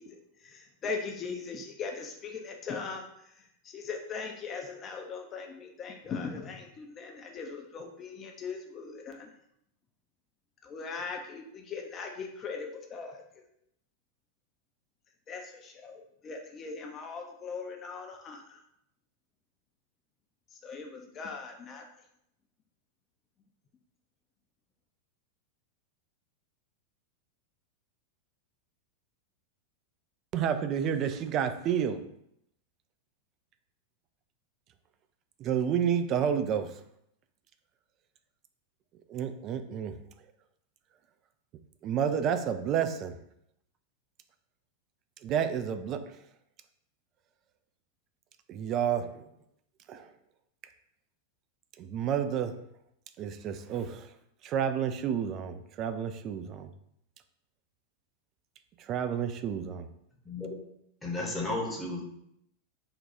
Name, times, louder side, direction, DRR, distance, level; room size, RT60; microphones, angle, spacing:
voice 1, 0.0-9.3 10.6-13.4 15.3-18.6 20.5-21.8, left 5 dB, 25° left, 3 dB, 0.5 m, -40 dB
voice 2, 30.3-32.0 35.4-36.7 39.1-39.9 41.8-43.2 45.2-46.2 48.5-49.2 49.9-50.1 51.8-52.6 53.2-54.1 54.4-56.7 58.8-59.9, right 8 dB, 35° right, 9 dB, 0.3 m, -30 dB
voice 3, 61.0-62.0, left 2 dB, 10° left, -2 dB, 0.8 m, -33 dB
3.6 x 2.3 x 4.2 m, 0.76 s
figure-of-eight pair, 90°, 0 cm